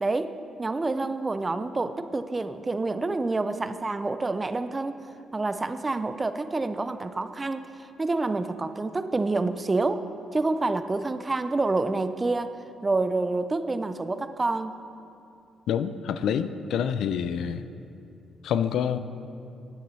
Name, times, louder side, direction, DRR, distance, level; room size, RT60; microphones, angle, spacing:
voice 1, 0.0-5.0 5.3-10.1 10.3-12.6 12.8-14.8, right 3 dB, 25° right, 11 dB, 0.4 m, -28 dB
voice 2, 15.7-17.7 18.4-19.0, left 8 dB, 75° left, 12 dB, 0.3 m, -27 dB
10.5 x 9.1 x 3.2 m, 2.6 s
cardioid pair, 90°, 0 cm